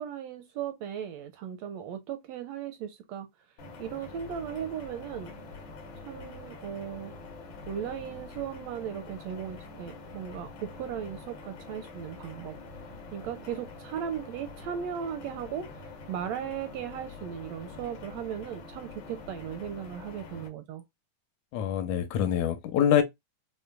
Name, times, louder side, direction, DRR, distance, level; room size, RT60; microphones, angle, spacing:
voice 1, 0.0-3.3 3.8-5.3 6.1-7.1 7.7-12.6 13.1-15.7 16.1-20.8, right 9 dB, 80° right, 1.6 m, -37 dB
sound 1, 3.6-20.5, left 3 dB, 65° left, 1.1 m, -45 dB
voice 2, 21.5-23.0, left 9 dB, 85° left, 1.9 m, -25 dB
5.1 x 2.1 x 2.2 m
omnidirectional pair, 3.3 m